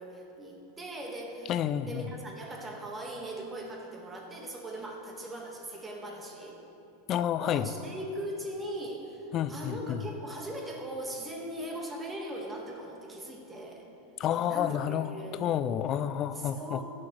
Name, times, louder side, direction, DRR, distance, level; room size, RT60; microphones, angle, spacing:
voice 1, 0.0-6.6 7.4-13.9 14.5-15.8 16.3-16.8, right 1 dB, 15° right, 0 dB, 1.6 m, -40 dB
voice 2, 1.5-2.0 7.1-7.7 9.3-10.0 14.2-15.1 15.3-16.8, left 10 dB, 40° left, 14 dB, 0.3 m, -30 dB
15.0 x 6.3 x 3.2 m, 2.8 s
hypercardioid pair, 95°, 0 cm